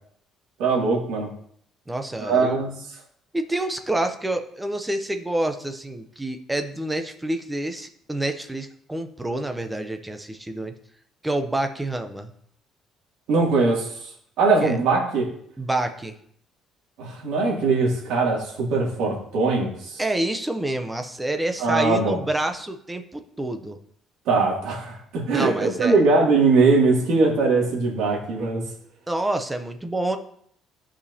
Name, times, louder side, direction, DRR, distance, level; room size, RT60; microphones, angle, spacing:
voice 1, 0.6-1.3 2.2-2.7 13.3-13.9 14.4-15.3 17.0-20.0 21.6-22.2 24.3-28.6, right 3 dB, 75° right, -3 dB, 2.4 m, -21 dB
voice 2, 1.9-2.6 3.3-10.7 11.2-12.3 14.6-14.8 15.6-16.1 20.0-23.8 25.3-26.0 29.1-30.2, right 1 dB, 5° right, 6 dB, 0.6 m, -27 dB
15.0 x 5.0 x 2.8 m, 0.66 s
cardioid pair, 180°, 0 cm